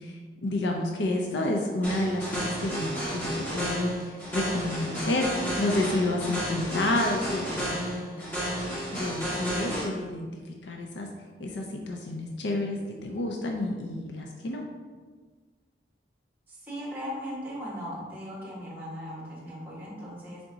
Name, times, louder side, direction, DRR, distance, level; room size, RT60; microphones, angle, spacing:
voice 1, 0.0-8.5 8.9-11.1 11.4-14.6, left 2 dB, 75° left, 2 dB, 0.5 m, -30 dB
sound 1, 1.8-9.8, equal, 10° left, 1.5 m, -32 dB
voice 2, 16.5-20.4, equal, 10° right, -6 dB, 1.1 m, -38 dB
3.9 x 3.5 x 3.8 m, 1.4 s
head